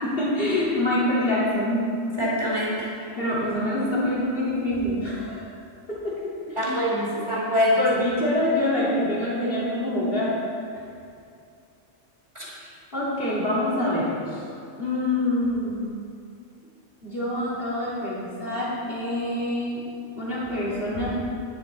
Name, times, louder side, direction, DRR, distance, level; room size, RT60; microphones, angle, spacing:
voice 1, 0.0-1.9 3.2-5.6 5.9-6.9 7.8-10.4 10.7-10.8 12.5-14.4 14.8-15.9 17.0-19.8 20.2-21.2, left 1 dB, 45° left, -7 dB, 3.1 m, -26 dB
voice 2, 2.2-2.9 6.6-7.8 12.3-12.4, left 1 dB, 20° right, -6 dB, 2.8 m, -24 dB
11.0 x 10.0 x 4.1 m, 2.4 s
omnidirectional pair, 1.3 m